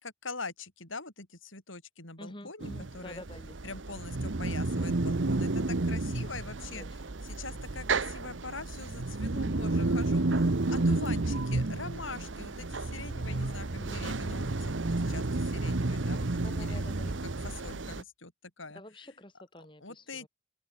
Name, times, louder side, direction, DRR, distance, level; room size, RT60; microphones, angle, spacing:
voice 1, 0.0-3.2 3.6-6.9 7.2-17.1 17.4-19.1 19.8-20.3, left 3 dB, 80° left, 6.4 m, -43 dB
voice 2, 2.2-3.6 3.9-4.0 6.0-6.4 6.7-7.1 7.5-7.7 10.4-10.6 13.3-14.1 16.4-17.6 18.7-20.3, left 1 dB, 25° left, 5.1 m, -50 dB
sound 1, 2.6-18.0, right 2 dB, 70° right, 1.0 m, -31 dB
open air
head